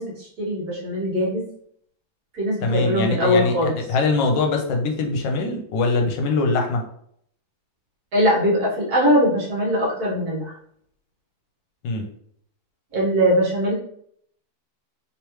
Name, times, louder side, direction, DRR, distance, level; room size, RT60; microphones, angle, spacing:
voice 1, 0.0-1.4 2.3-3.7 8.1-10.5 12.9-13.7, equal, 55° right, -4 dB, 1.7 m, -21 dB
voice 2, 2.6-6.8 11.8-12.0, left 3 dB, 75° left, 2 dB, 1.3 m, -22 dB
3.5 x 3.1 x 3.0 m, 0.67 s
omnidirectional pair, 2.0 m